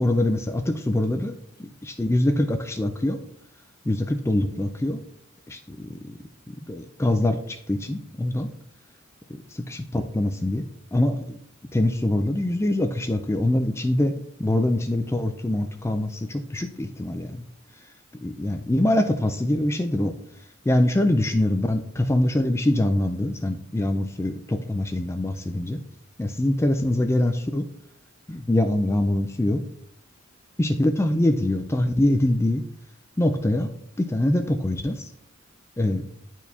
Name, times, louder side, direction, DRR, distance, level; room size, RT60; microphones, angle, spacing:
voice 1, 0.0-3.2 3.9-5.0 5.5-6.0 6.5-8.5 9.5-10.6 10.9-11.4 11.7-14.1 14.4-17.4 18.2-20.1 20.7-25.8 26.2-27.7 28.3-29.6 30.6-32.6 33.2-33.7 34.0-35.1 35.8-36.0, left 1 dB, 15° left, 7 dB, 0.4 m, -24 dB
10.0 x 4.5 x 2.7 m, 0.66 s
head